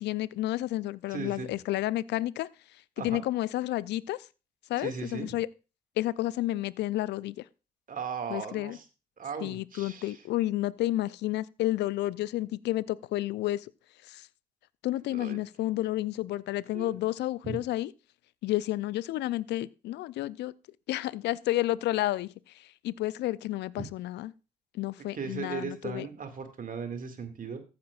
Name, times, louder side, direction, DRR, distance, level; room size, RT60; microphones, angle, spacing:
voice 1, 0.0-2.5 3.0-4.3 4.7-5.5 6.0-7.5 8.3-8.8 9.4-13.7 14.1-14.3 14.8-17.9 18.4-20.5 20.9-24.3 24.7-26.1, left 15 dB, 60° left, 0.5 m, -31 dB
voice 2, 1.1-1.5 3.0-3.2 4.8-5.3 7.9-8.8 9.2-10.2 15.1-15.4 16.7-16.9 17.4-17.6 23.8-23.9 25.1-27.6, right 6 dB, 45° right, 2.1 m, -37 dB
14.5 x 8.8 x 2.4 m
hypercardioid pair, 50°, 20 cm